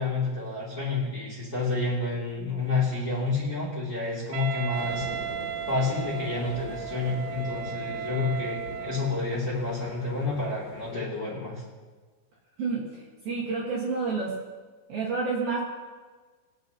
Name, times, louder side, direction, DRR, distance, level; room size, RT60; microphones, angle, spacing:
voice 1, 0.0-5.1 5.7-11.6, left 3 dB, 25° left, -6 dB, 2.2 m, -29 dB
Wind instrument woodwind instrument, 4.3-9.3, right 10 dB, 85° right, 2.6 m, -35 dB
sound 1, 4.7-11.0, left 6 dB, 80° left, 3.6 m, -43 dB
voice 2, 12.6-14.4 14.9-15.6, right 4 dB, 60° right, -6 dB, 2.8 m, -29 dB
22.5 x 8.9 x 3.0 m, 1.4 s
omnidirectional pair, 6.0 m